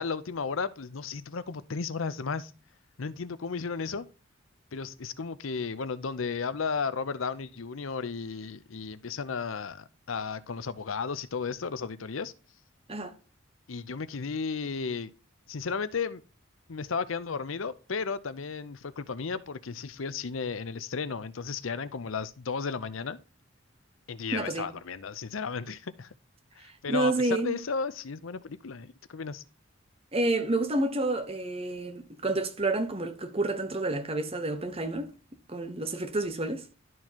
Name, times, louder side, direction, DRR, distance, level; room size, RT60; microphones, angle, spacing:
voice 1, 0.0-2.5 3.0-4.0 4.7-12.3 13.7-15.1 15.5-16.2 16.7-23.2 24.1-26.1 26.6-29.4, left 5 dB, 75° left, 0.7 m, -34 dB
voice 2, 24.3-24.7 26.9-27.6 30.1-35.1 35.5-36.7, right 2 dB, 30° right, 1.1 m, -29 dB
12.5 x 4.6 x 2.9 m
head